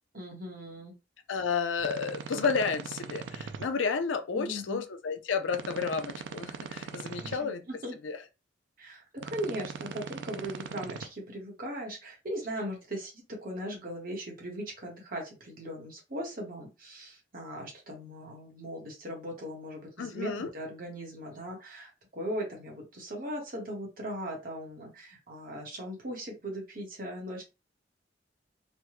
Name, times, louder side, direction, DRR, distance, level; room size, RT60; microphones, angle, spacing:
voice 1, 0.1-0.9 4.3-4.8 7.2-7.9 8.8-27.4, equal, 50° right, 1.1 m, -39 dB
voice 2, 1.3-7.6 8.0-8.2 20.0-20.5, left 5 dB, 90° left, 0.5 m, -31 dB
sound 1, 1.8-3.7 5.5-7.4 9.2-11.0, right 5 dB, 75° right, 0.4 m, -40 dB
3.3 x 2.2 x 3.0 m
head